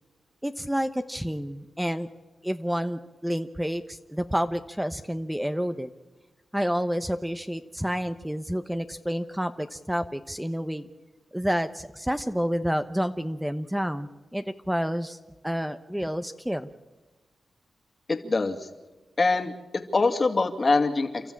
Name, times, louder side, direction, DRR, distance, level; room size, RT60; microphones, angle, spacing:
voice 1, 0.4-2.1 2.4-5.9 6.5-10.9 11.3-15.2 15.4-16.7, equal, 5° right, 9 dB, 1.0 m, -29 dB
voice 2, 18.1-18.7 19.2-21.2, left 3 dB, 45° left, 6 dB, 2.5 m, -24 dB
29.5 x 13.0 x 8.7 m, 1.2 s
cardioid pair, 50°, 0 cm